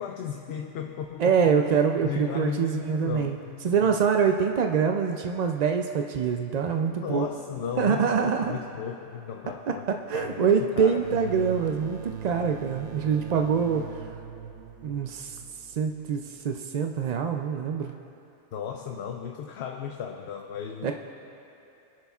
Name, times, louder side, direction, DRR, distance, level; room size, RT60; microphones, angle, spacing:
voice 1, 0.0-1.5 2.0-4.0 6.8-11.2 18.5-20.9, left 8 dB, 65° left, 3 dB, 0.8 m, -35 dB
voice 2, 1.2-3.4 3.6-7.3 7.8-8.6 9.7-13.9 14.8-15.4 15.7-17.9 20.8-20.9, right 6 dB, 60° right, 4 dB, 0.4 m, -25 dB
sound 1, 11.0-16.4, right 8 dB, 80° right, 0.9 m, -41 dB
29.5 x 10.5 x 2.4 m, 2.8 s
omnidirectional pair, 1.2 m